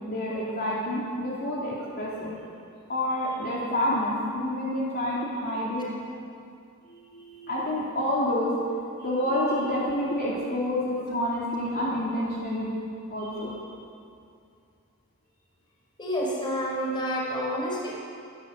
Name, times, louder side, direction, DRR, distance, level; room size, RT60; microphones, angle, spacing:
voice 1, 0.1-2.3 2.9-5.8 6.9-8.5 9.0-12.7 13.1-13.6, left 1 dB, 45° left, -6 dB, 3.7 m, -28 dB
voice 2, 16.0-18.0, equal, 20° left, -4 dB, 5.4 m, -29 dB
27.0 x 11.5 x 8.3 m, 2.4 s
head